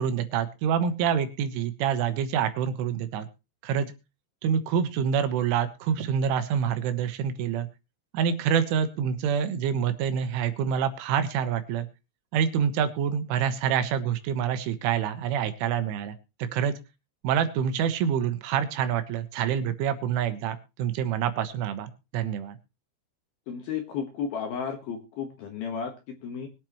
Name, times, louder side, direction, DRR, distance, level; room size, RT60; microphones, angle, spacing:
voice 1, 0.0-3.3 3.6-3.9 4.4-7.7 8.1-11.9 12.3-16.7 17.2-22.6, right 8 dB, 75° right, 10 dB, 3.5 m, -27 dB
voice 2, 23.5-26.5, left 7 dB, 65° left, 4 dB, 2.5 m, -33 dB
22.0 x 8.3 x 3.1 m, 0.28 s
omnidirectional pair, 5.9 m